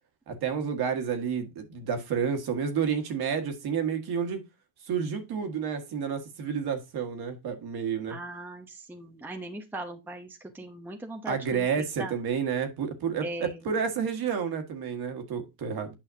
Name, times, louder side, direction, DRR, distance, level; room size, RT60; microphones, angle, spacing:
voice 1, 0.3-4.4 4.9-8.2 11.2-15.9, right 7 dB, 50° right, 1.7 m, -30 dB
voice 2, 8.1-11.7 12.0-12.1 13.2-13.6, right 1 dB, 5° right, 0.8 m, -39 dB
9.1 x 5.6 x 2.7 m
hypercardioid pair, 90°, 50 cm